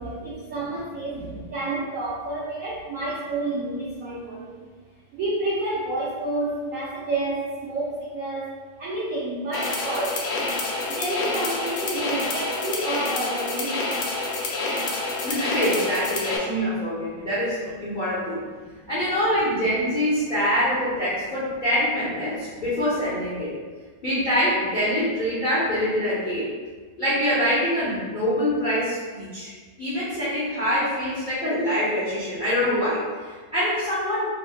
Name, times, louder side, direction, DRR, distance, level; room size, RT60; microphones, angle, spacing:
voice 1, 0.0-4.7 5.1-8.5 8.8-10.2 10.9-13.8, right 2 dB, 80° right, -7 dB, 0.7 m, -29 dB
sound 1, 9.5-16.4, left 3 dB, 75° left, 1.2 m, -28 dB
voice 2, 15.2-18.4 18.9-23.5 24.0-26.5 27.0-29.5 29.8-34.2, equal, 45° left, -12 dB, 0.6 m, -25 dB
3.1 x 3.0 x 2.3 m, 1.5 s
omnidirectional pair, 2.1 m